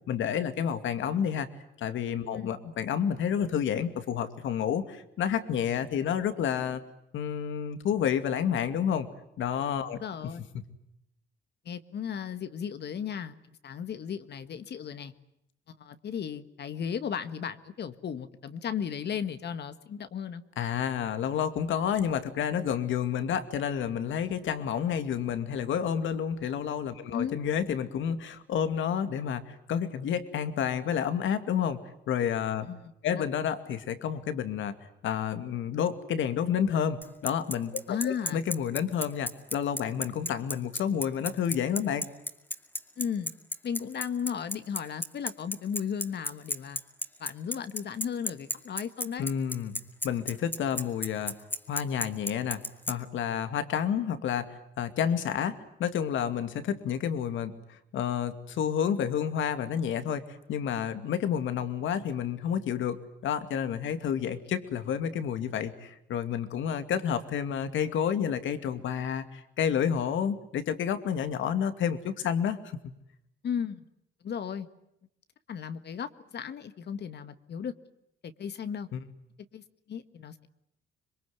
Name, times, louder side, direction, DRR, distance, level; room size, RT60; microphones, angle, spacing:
voice 1, 0.1-1.5 1.8-6.8 7.1-9.1 9.4-10.0 20.6-31.8 32.1-32.7 33.0-34.8 35.0-42.1 49.2-49.8 50.0-51.4 51.7-60.2 60.5-72.6 78.9-79.0, left 8 dB, 75° left, 10 dB, 2.4 m, -30 dB
voice 2, 10.0-10.4 11.7-13.3 13.6-15.1 15.8-20.4 27.1-27.4 32.6-33.2 37.9-38.4 43.0-43.3 43.6-46.8 47.2-49.3 73.4-73.8 74.2-74.7 75.5-77.7 78.2-78.9 79.5-80.5, left 7 dB, 55° left, 11 dB, 1.7 m, -35 dB
Bicycle, 37.0-52.9, left 1 dB, 10° left, 2.4 m, -32 dB
26.5 x 22.5 x 9.5 m, 0.82 s
cardioid pair, 90°, 20 cm